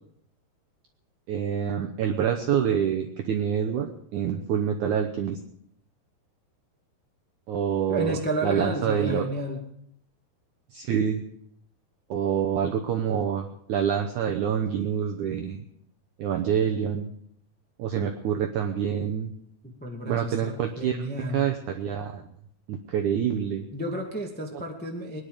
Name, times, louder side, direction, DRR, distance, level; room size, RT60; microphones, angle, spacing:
voice 1, 1.3-5.4 7.5-9.2 10.7-11.2 12.1-15.6 16.2-17.1 17.8-19.3 20.1-21.1 21.3-22.2 22.7-23.6, right 8 dB, 80° right, 4 dB, 1.7 m, -26 dB
voice 2, 7.9-9.6 19.8-21.4 23.7-25.2, right 1 dB, 10° left, 0 dB, 0.5 m, -31 dB
22.0 x 10.5 x 5.0 m, 0.70 s
omnidirectional pair, 4.7 m